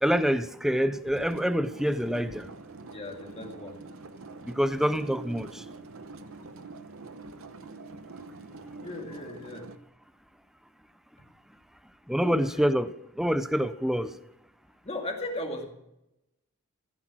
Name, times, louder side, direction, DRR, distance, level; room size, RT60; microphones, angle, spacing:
voice 1, 0.0-2.5 4.4-5.5 12.1-14.1, equal, ahead, 0.5 m, -26 dB
sound 1, 1.0-9.8, right 3 dB, 75° right, 0.9 m, -45 dB
voice 2, 2.9-3.8 8.8-9.7 12.2-12.7 14.8-15.7, left 2 dB, 30° left, 2.3 m, -36 dB
15.5 x 10.0 x 6.2 m
head